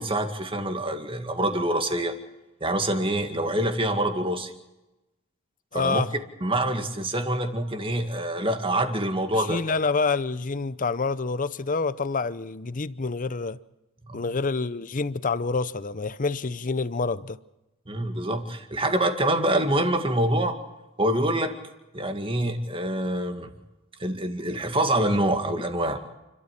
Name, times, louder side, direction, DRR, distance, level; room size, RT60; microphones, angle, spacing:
voice 1, 0.0-2.1 2.6-4.5 5.7-6.1 6.4-9.8 14.1-14.2 17.9-20.6 21.0-21.5 21.9-23.5 24.0-26.0, right 1 dB, 25° right, 2.1 m, -26 dB
voice 2, 5.7-6.1 9.3-13.6 14.1-17.4, left 4 dB, 35° left, 0.7 m, -27 dB
29.5 x 13.0 x 7.5 m
head